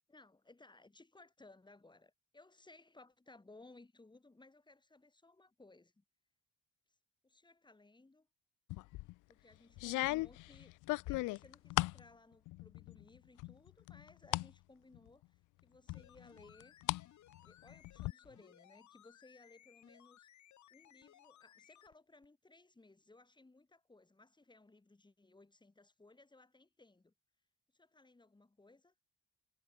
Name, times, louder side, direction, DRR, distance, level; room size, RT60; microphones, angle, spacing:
voice 1, 0.0-6.0 7.2-8.3 9.3-10.7 11.1-16.8 17.4-20.3 20.7-27.1 27.7-28.9, left 2 dB, 15° left, 2.9 m, -62 dB
sound 1, 8.7-9.1 9.8-12.0 12.5-13.0 13.4-14.5 14.9-15.0 15.9-17.0 17.3-18.1, left 21 dB, 90° left, 0.5 m, -37 dB
sound 2, 15.9-22.0 22.2-22.3, left 11 dB, 70° left, 3.7 m, -63 dB
cardioid pair, 90°, 30 cm